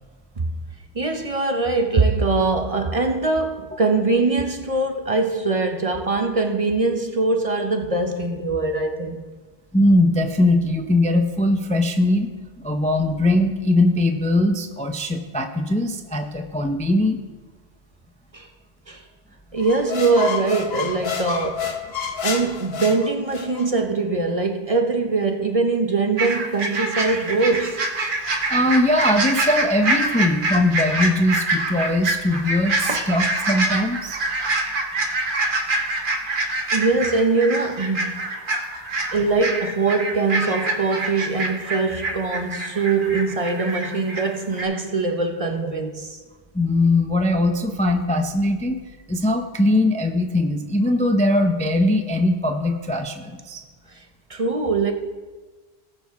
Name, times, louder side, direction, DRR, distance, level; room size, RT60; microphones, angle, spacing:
voice 1, 0.9-9.2 18.3-18.5 18.9-19.0 19.5-21.7 22.2-27.8 32.9-33.1 36.7-38.2 39.1-45.9 54.3-54.9, right 3 dB, 40° right, 0.7 m, -22 dB
voice 2, 9.7-12.3 12.6-17.2 28.5-34.2 46.5-48.8 49.1-53.6, left 1 dB, 10° left, 0.4 m, -20 dB
sound 1, 19.6-23.7, left 6 dB, 70° left, 1.1 m, -29 dB
sound 2, 26.2-44.2 44.5-44.6, right 2 dB, 55° right, 1.3 m, -25 dB
18.5 x 6.5 x 3.5 m
omnidirectional pair, 1.0 m